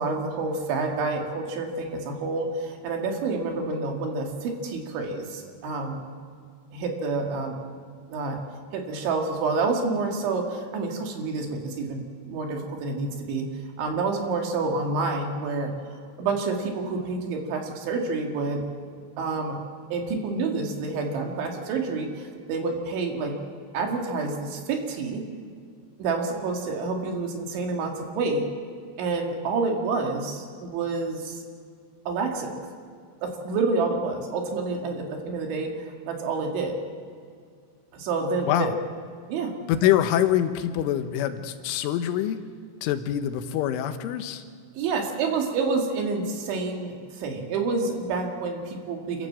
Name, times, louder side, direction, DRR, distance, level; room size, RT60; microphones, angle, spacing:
voice 1, 0.0-6.0 6.7-7.6 8.1-8.4 8.7-13.5 13.8-15.7 16.2-18.6 19.2-19.6 19.9-23.4 23.7-25.2 26.0-28.5 29.0-31.4 32.1-32.7 33.2-36.8 37.9-38.7 39.3-39.5 44.7-49.3, right 3 dB, 75° right, 2 dB, 4.5 m, -28 dB
voice 2, 38.5-38.8 39.7-42.4 42.8-44.4, left 11 dB, 90° left, 9 dB, 3.5 m, -25 dB
27.0 x 14.5 x 7.5 m, 2.1 s
omnidirectional pair, 5.5 m